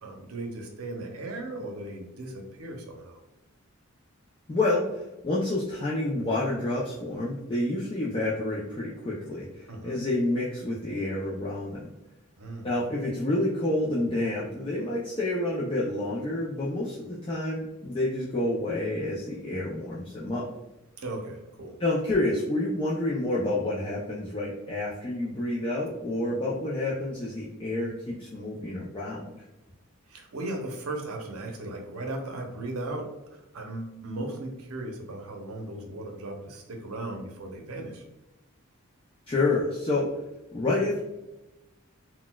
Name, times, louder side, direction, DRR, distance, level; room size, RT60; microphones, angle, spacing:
voice 1, 0.0-3.2 9.7-10.0 12.4-12.8 21.0-21.7 30.1-38.0, right 2 dB, 85° right, 2 dB, 0.6 m, -37 dB
voice 2, 4.5-11.9 12.6-20.5 21.8-29.4 39.3-40.1 40.5-41.0, left 2 dB, 25° left, -6 dB, 0.4 m, -29 dB
3.9 x 2.2 x 2.2 m, 1.0 s
head